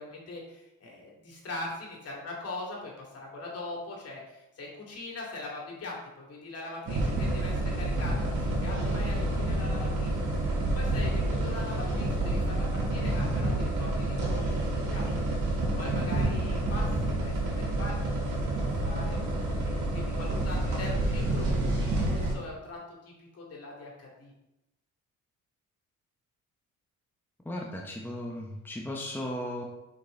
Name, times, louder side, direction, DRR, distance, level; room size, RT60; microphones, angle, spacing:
voice 1, 0.0-10.3 10.7-15.0 15.8-19.2 19.6-24.3, left 2 dB, 55° left, -2 dB, 2.7 m, -41 dB
sound 1, 6.9-22.4, right 1 dB, 70° right, 2.3 m, -28 dB
voice 2, 27.5-29.6, left 1 dB, 5° left, 0 dB, 1.0 m, -36 dB
6.1 x 5.8 x 3.9 m, 0.92 s
cardioid pair, 90°, 30 cm